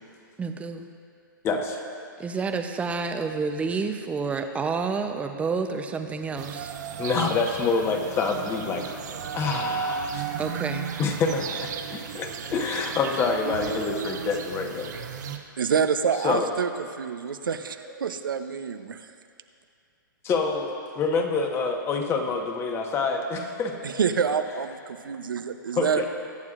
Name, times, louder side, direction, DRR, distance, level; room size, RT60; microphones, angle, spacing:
voice 1, 0.4-0.9 2.2-6.7 10.4-10.9, right 4 dB, 10° right, 6 dB, 0.7 m, -29 dB
voice 2, 1.4-1.8 7.0-9.0 9.3-10.3 11.0-14.9 16.2-16.5 20.2-23.7 25.8-26.0, left 4 dB, 20° left, 3 dB, 1.2 m, -27 dB
sound 1, 6.4-15.4, right 6 dB, 55° right, 1.0 m, -34 dB
voice 3, 15.6-19.1 23.8-26.0, right 6 dB, 80° right, 8 dB, 0.7 m, -27 dB
22.0 x 9.5 x 2.5 m, 2.3 s
hypercardioid pair, 130°, 11 cm